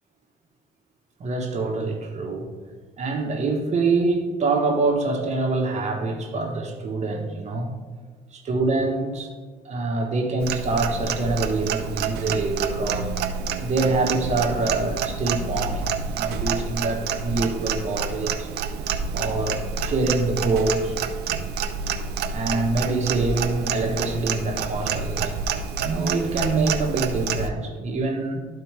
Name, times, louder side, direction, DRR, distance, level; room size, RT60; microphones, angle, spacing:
voice 1, 1.2-2.5 3.0-7.7 8.3-9.3 9.6-13.1 13.6-18.5 19.1-21.0 22.3-25.3 25.8-28.5, right 3 dB, 40° right, 3 dB, 1.3 m, -25 dB
Clock, 10.4-27.5, right 6 dB, 75° right, 0.6 m, -28 dB
12.0 x 4.2 x 3.4 m, 1.5 s
cardioid pair, 110°, 17 cm